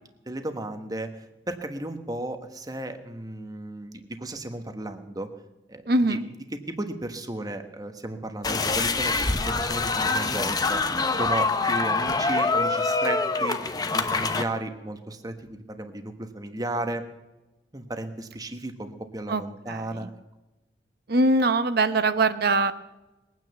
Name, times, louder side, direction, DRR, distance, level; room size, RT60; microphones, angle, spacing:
voice 1, 0.3-5.3 5.7-6.2 6.5-10.8 11.2-13.6 13.9-17.0 17.7-20.1, right 1 dB, 20° right, 7 dB, 1.3 m, -34 dB
voice 2, 5.9-6.2 19.3-19.4 19.7-20.1 21.1-22.7, right 2 dB, 55° right, 11 dB, 0.9 m, -22 dB
sound 1, 8.4-14.4, left 3 dB, 20° left, 0.9 m, -25 dB
21.0 x 9.5 x 7.0 m, 1.0 s
head